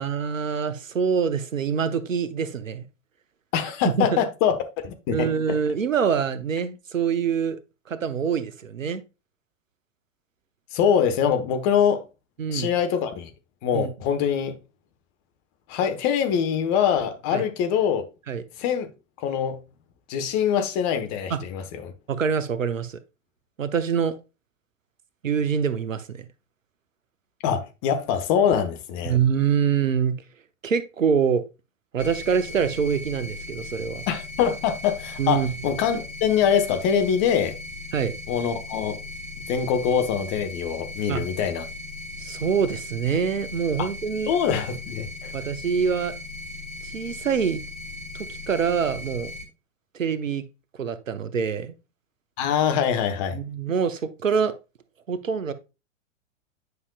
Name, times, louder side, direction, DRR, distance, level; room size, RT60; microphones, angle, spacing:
voice 1, 0.0-2.9 3.8-4.2 5.1-7.6 7.9-9.0 12.4-12.7 13.7-13.9 17.3-17.5 18.3-18.4 21.3-21.4 22.1-23.0 23.6-24.2 25.2-26.3 29.0-30.2 30.6-31.4 31.9-34.0 35.2-35.5 37.9-38.1 41.1-41.3 42.2-44.3 45.3-46.1 46.8-47.6 48.1-49.3 49.9-50.5 50.8-51.7 53.3-54.5 55.1-55.5, right 7 dB, 75° right, 0.9 m, -25 dB
voice 2, 3.5-4.6 4.8-5.3 10.7-12.0 12.5-13.3 13.6-14.5 15.7-18.0 18.6-18.9 19.2-19.6 20.1-21.9 27.4-29.1 34.1-37.5 38.3-39.0 39.5-41.6 44.3-45.3 52.4-53.4, left 8 dB, 40° left, 1.2 m, -24 dB
sound 1, 32.0-49.4, left 2 dB, 20° left, 2.9 m, -38 dB
9.5 x 5.7 x 2.3 m
figure-of-eight pair, 95°, 39 cm